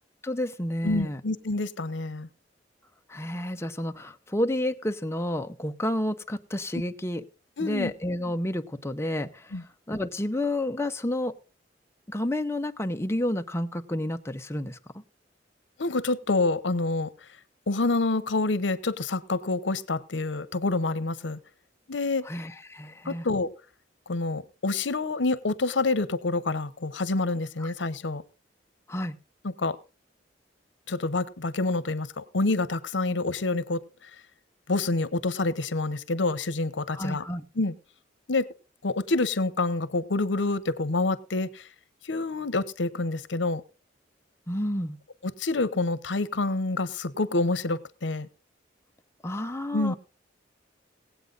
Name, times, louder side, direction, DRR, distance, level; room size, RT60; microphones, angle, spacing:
voice 1, 0.2-1.2 3.1-7.2 7.6-11.4 12.1-15.0 22.2-23.3 27.6-27.7 28.9-29.2 36.9-37.4 44.5-45.0 49.2-49.9, left 1 dB, 15° left, 7 dB, 0.8 m, -30 dB
voice 2, 0.8-2.3 7.6-7.9 9.5-9.6 15.8-17.1 17.7-21.4 21.9-22.3 23.1-23.5 24.1-28.2 29.4-29.8 30.9-34.1 34.7-37.2 37.6-37.7 38.3-38.5 38.8-41.6 42.0-43.6 45.4-48.3 49.7-50.0, left 3 dB, 80° left, 15 dB, 0.9 m, -27 dB
18.0 x 8.3 x 3.9 m, 0.34 s
head